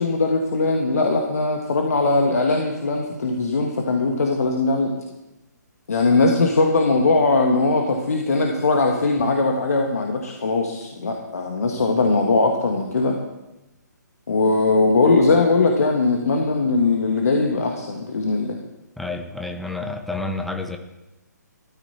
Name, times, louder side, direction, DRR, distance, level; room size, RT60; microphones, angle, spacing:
voice 1, 0.0-5.0 5.9-13.2 14.3-18.6, left 3 dB, 55° left, 2 dB, 1.8 m, -20 dB
voice 2, 19.0-20.8, left 3 dB, ahead, 5 dB, 0.8 m, -29 dB
14.0 x 13.0 x 4.4 m, 0.96 s
figure-of-eight pair, 135°, 10 cm